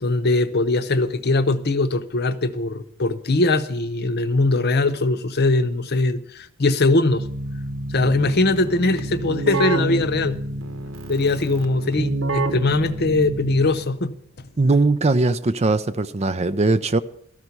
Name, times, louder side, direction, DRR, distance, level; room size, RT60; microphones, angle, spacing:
voice 1, 0.0-7.3 7.9-10.4 11.1-14.1, left 2 dB, 50° left, 0.8 m, -21 dB
Keyboard (musical), 7.1-14.0, right 2 dB, 65° right, 1.1 m, -28 dB
voice 2, 14.6-17.0, right 3 dB, 30° right, 0.5 m, -20 dB
13.5 x 5.8 x 9.5 m
head